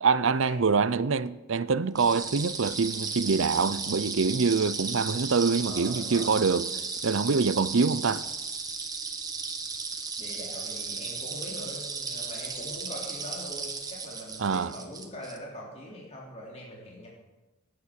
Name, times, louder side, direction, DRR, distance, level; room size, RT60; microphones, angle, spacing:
voice 1, 0.0-6.7 7.0-8.2 14.4-14.7, right 5 dB, 60° right, 0.6 m, -25 dB
sound 1, 2.0-15.4, right 4 dB, 20° right, 1.4 m, -35 dB
voice 2, 5.6-6.4 10.2-17.1, equal, 30° left, 3.3 m, -42 dB
17.5 x 9.7 x 6.5 m
head